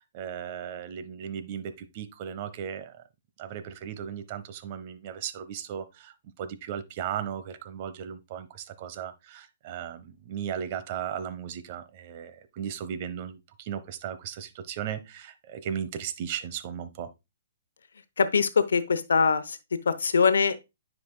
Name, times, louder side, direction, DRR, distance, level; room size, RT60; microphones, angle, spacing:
voice 1, 0.1-3.0 3.4-17.1, right 8 dB, 40° right, 0.9 m, -36 dB
voice 2, 18.2-20.7, left 5 dB, 80° left, 0.8 m, -23 dB
9.5 x 5.0 x 2.2 m
hypercardioid pair, 135°, 0 cm